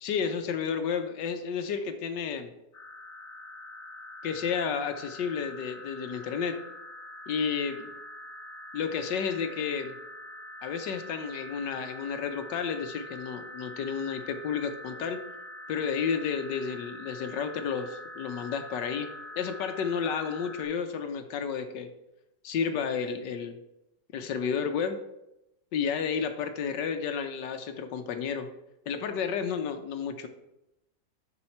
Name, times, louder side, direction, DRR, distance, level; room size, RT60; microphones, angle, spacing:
voice 1, 0.0-2.5 4.2-6.6 7.3-7.9 8.7-9.9 10.6-15.2 15.7-19.1 19.4-21.9 22.4-23.6 24.1-25.0 25.7-28.5 28.9-30.3, left 6 dB, 80° left, 7 dB, 1.4 m, -31 dB
sound 1, 2.7-20.6, left 1 dB, 50° left, 1.9 m, -44 dB
11.5 x 4.8 x 4.3 m, 0.88 s
omnidirectional pair, 1.9 m